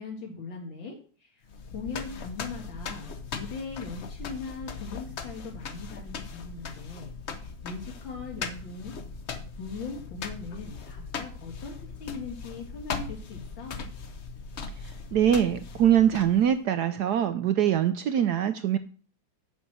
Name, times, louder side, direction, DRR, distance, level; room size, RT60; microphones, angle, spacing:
voice 1, 0.0-8.9 9.6-13.7, left 4 dB, 70° left, 0 dB, 2.3 m, -40 dB
sound 1, 1.5-16.6, left 5 dB, 50° left, 0.8 m, -39 dB
voice 2, 15.1-18.8, right 10 dB, 70° right, 10 dB, 1.0 m, -23 dB
7.0 x 6.4 x 7.6 m, 0.42 s
omnidirectional pair, 2.2 m